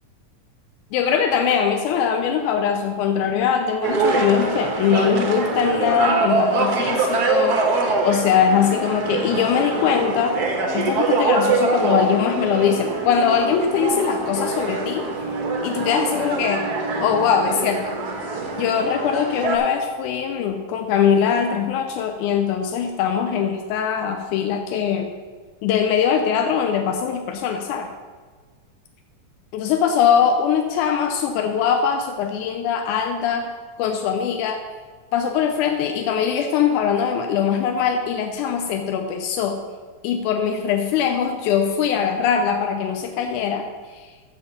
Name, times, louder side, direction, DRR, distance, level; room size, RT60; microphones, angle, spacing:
voice 1, 0.9-7.6 8.0-10.4 10.7-15.1 15.6-16.7 17.0-18.0 18.6-25.1 25.6-27.9 29.5-33.5 33.8-34.6 35.1-39.6 40.0-43.7 43.9-44.0, left 7 dB, 90° left, 4 dB, 2.2 m, -21 dB
sound 1, 3.8-19.6, right 3 dB, 80° right, 0.8 m, -24 dB
7.9 x 6.5 x 6.7 m, 1.5 s
omnidirectional pair, 3.5 m